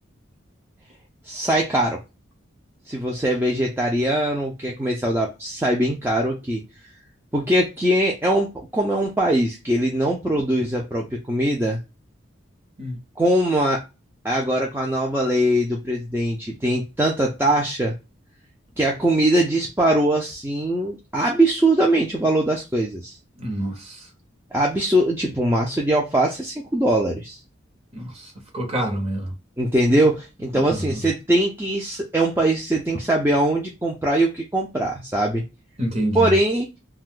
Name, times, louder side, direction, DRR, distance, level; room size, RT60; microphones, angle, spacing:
voice 1, 1.3-2.0 2.9-6.6 7.3-11.8 13.2-13.8 14.2-17.9 18.8-23.2 24.5-27.4 29.6-35.4 36.1-36.7, right 1 dB, 10° right, 0.4 m, -21 dB
voice 2, 23.4-24.1 27.9-29.3 30.5-31.1 35.8-36.3, right 1 dB, 30° right, 0.9 m, -28 dB
2.6 x 2.3 x 3.6 m
head